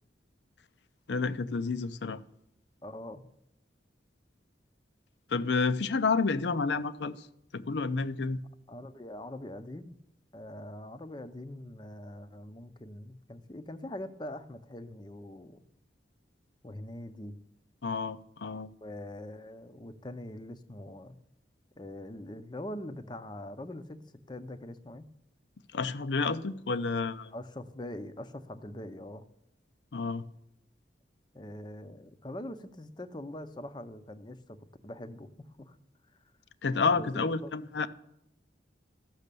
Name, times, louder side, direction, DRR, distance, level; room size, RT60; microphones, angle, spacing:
voice 1, 1.1-2.2 5.3-7.3 7.5-8.4 17.8-18.7 25.7-27.3 29.9-30.2 36.6-37.9, left 4 dB, 70° left, 0.5 m, -30 dB
voice 2, 2.8-3.2 8.7-10.0 10.3-15.6 16.6-17.4 18.8-21.2 21.8-25.1 27.3-29.3 31.3-34.6 34.8-35.8 36.9-37.5, left 1 dB, 25° left, 0.6 m, -43 dB
13.5 x 6.4 x 6.8 m
head